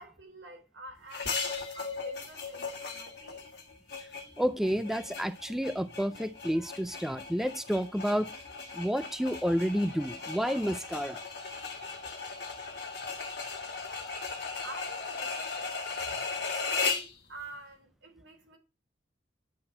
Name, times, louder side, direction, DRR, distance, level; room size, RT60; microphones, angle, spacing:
voice 1, 0.0-1.4 1.7-3.4 14.6-15.7 16.3-18.6, right 2 dB, 85° right, 3.1 m, -48 dB
sound 1, 1.1-17.2, left 4 dB, 65° left, 1.7 m, -37 dB
voice 2, 4.4-8.3 8.7-11.2, equal, ahead, 0.4 m, -30 dB
9.6 x 4.3 x 4.3 m
head